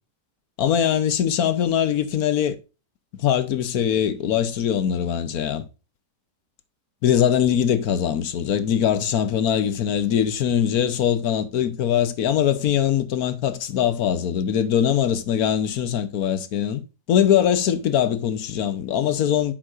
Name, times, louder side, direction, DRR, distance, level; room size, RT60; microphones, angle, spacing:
voice 1, 0.6-2.6 3.2-5.6 7.0-16.8 17.1-19.5, left 9 dB, 65° left, 1.3 m, -22 dB
9.5 x 7.6 x 2.5 m
omnidirectional pair, 1.8 m